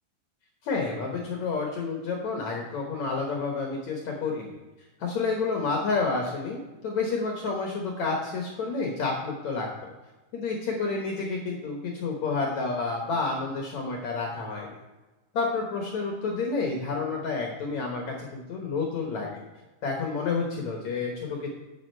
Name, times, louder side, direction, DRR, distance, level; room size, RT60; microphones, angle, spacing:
voice 1, 0.6-4.5 5.0-9.9 10.3-14.8 15.3-19.4 19.8-21.5, left 4 dB, 65° left, 0 dB, 1.8 m, -30 dB
8.7 x 8.2 x 4.5 m, 1.1 s
omnidirectional pair, 4.7 m